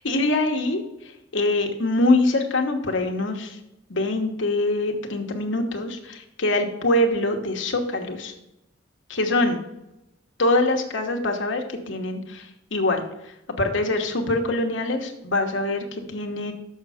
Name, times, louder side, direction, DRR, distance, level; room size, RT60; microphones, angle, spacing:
voice 1, 0.0-0.8 1.3-3.6 3.9-8.3 9.1-9.6 10.4-13.0 13.6-16.5, left 2 dB, 80° left, 3 dB, 1.2 m, -24 dB
6.5 x 6.0 x 5.0 m, 0.90 s
head